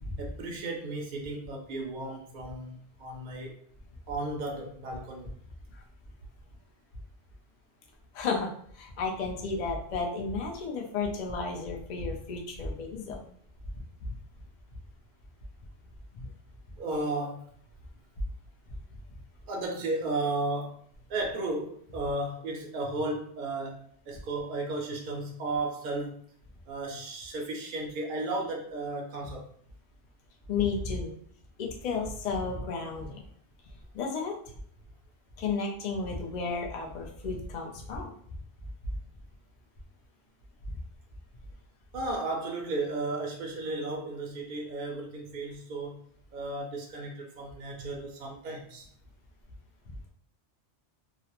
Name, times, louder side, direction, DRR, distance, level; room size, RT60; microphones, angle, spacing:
voice 1, 0.2-3.5 4.1-5.3 16.8-17.4 19.5-20.8 21.1-26.2 26.7-29.5 41.9-46.0 46.3-48.9, right 2 dB, 60° right, 0 dB, 0.5 m, -34 dB
voice 2, 8.1-13.2 14.0-14.2 16.1-16.3 30.5-31.1 31.6-33.2 33.9-34.4 35.4-38.1 40.7-40.8 49.9-50.0, left 4 dB, 55° left, 0 dB, 0.5 m, -33 dB
2.4 x 2.0 x 2.8 m, 0.62 s
omnidirectional pair, 1.2 m